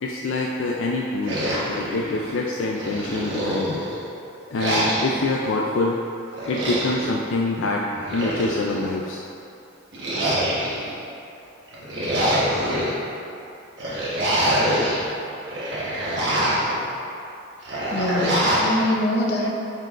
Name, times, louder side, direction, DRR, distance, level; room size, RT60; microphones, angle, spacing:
voice 1, 0.0-3.8 4.5-6.0 6.5-9.2, left 2 dB, 75° left, -2 dB, 0.4 m, -25 dB
sound 1, 1.2-2.4 2.8-4.0 4.6-5.3 6.3-7.1 7.9-8.9 9.9-10.9 11.7-12.9 13.8-15.0 15.4-16.8 17.6-18.8, equal, 60° right, 1.3 m, -24 dB
voice 2, 17.9-19.5, left 1 dB, 55° left, -2 dB, 0.8 m, -24 dB
8.9 x 4.6 x 2.5 m, 2.7 s
head